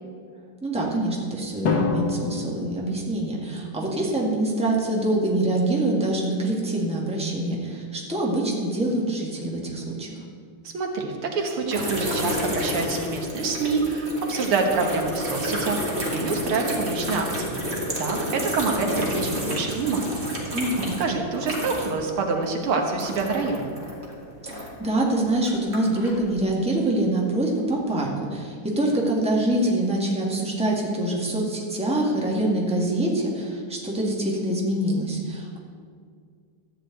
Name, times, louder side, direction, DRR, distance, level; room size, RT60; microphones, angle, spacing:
voice 1, 0.6-10.1 20.5-21.0 24.4-35.6, right 1 dB, 5° right, -3 dB, 1.7 m, -25 dB
Drum, 1.6-3.7, left 3 dB, 55° left, 2.0 m, -27 dB
voice 2, 10.6-15.8 16.1-17.6 18.0-20.2 21.0-23.7, right 4 dB, 75° right, 2 dB, 2.2 m, -26 dB
sound 1, 11.7-22.1 22.3-24.9 25.4-26.2, equal, 30° right, 2.3 m, -30 dB
14.0 x 5.0 x 9.1 m, 2.1 s
omnidirectional pair, 2.4 m